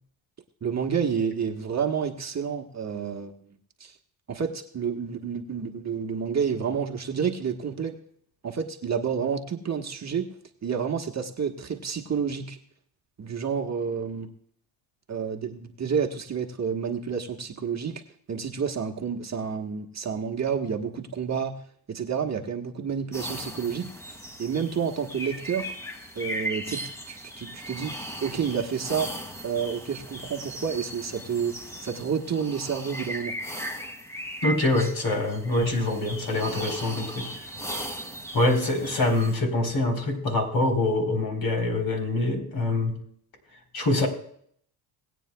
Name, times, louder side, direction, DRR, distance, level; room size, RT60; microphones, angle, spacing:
voice 1, 0.6-3.3 3.8-3.9 4.3-8.0 8.4-10.3 10.6-12.6 13.2-14.3 15.1-18.0 18.3-21.6 21.9-25.7 26.1-27.9 28.2-29.1 29.4-33.4, right 6 dB, 35° right, 3 dB, 1.4 m, -29 dB
sound 1, 23.1-39.3, equal, 5° left, 2.0 m, -37 dB
voice 2, 34.4-37.5 38.3-43.0 43.7-44.1, left 2 dB, 50° left, 3 dB, 3.7 m, -25 dB
19.5 x 9.1 x 2.3 m, 0.63 s
supercardioid pair, 80°, 47 cm